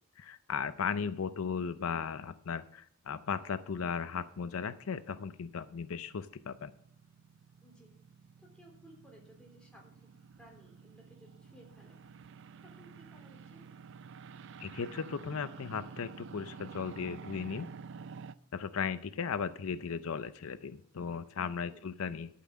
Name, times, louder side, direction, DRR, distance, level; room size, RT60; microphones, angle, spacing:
voice 1, 0.2-6.7 14.6-17.7 18.5-22.3, left 6 dB, 80° left, 13 dB, 0.5 m, -36 dB
sound 1, 4.1-18.4, right 5 dB, 60° right, 0.4 m, -51 dB
voice 2, 7.6-8.0 8.4-10.1 10.4-12.0 12.6-13.6 21.6-21.9, right 1 dB, 5° left, -1 dB, 3.3 m, -58 dB
12.0 x 5.8 x 7.3 m, 0.65 s
head